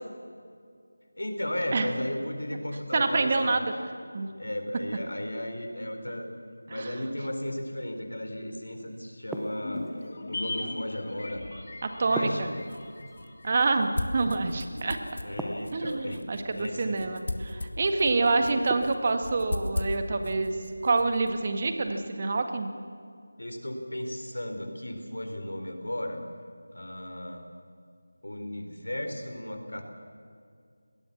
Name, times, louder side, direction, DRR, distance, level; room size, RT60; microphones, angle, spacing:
voice 1, 1.2-3.6 4.4-6.3 6.7-9.9 10.3-11.4 12.1-12.7 14.6-15.0 15.2-16.2 16.5-17.1 18.3-18.6 23.4-26.2 26.7-27.4 28.2-29.8, left 1 dB, 90° left, 5 dB, 4.1 m, -35 dB
voice 2, 2.9-3.7 4.1-4.3 6.7-6.9 12.0-12.5 13.4-15.0 15.7-20.5 20.8-22.7, right 3 dB, 35° right, 6 dB, 1.7 m, -27 dB
sound 1, 9.3-10.1 12.2-13.2 15.4-16.1 18.7-19.3, right 1 dB, ahead, 0.8 m, -37 dB
sound 2, 9.6-14.1 14.3-14.4, left 2 dB, 45° left, 2.6 m, -39 dB
sound 3, 12.2-22.1, left 1 dB, 65° left, 1.8 m, -38 dB
22.5 x 19.5 x 7.2 m, 2.3 s
figure-of-eight pair, 170°, 0 cm